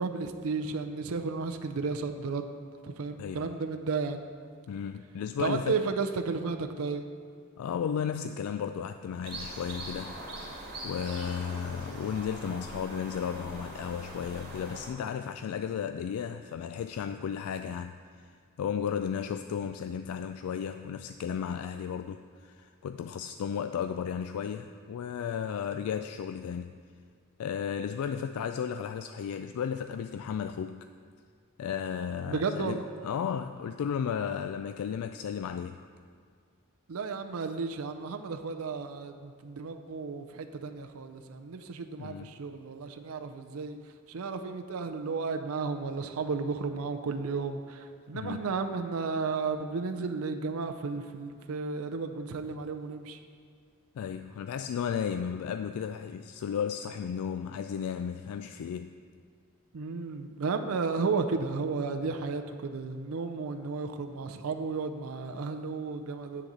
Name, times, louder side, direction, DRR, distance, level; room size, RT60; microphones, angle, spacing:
voice 1, 0.0-2.5 2.8-4.2 5.4-7.0 32.3-32.9 36.9-43.8 44.1-53.2 59.7-66.5, right 4 dB, 75° right, 6 dB, 0.5 m, -33 dB
voice 2, 3.2-3.5 4.7-5.8 7.6-10.2 10.8-26.7 27.4-30.9 31.6-35.8 42.0-42.3 48.1-48.5 53.9-58.9, left 7 dB, 80° left, 10 dB, 0.3 m, -34 dB
sound 1, 9.2-14.9, right 1 dB, 45° right, 2.7 m, -42 dB
9.9 x 4.0 x 7.5 m, 2.1 s
head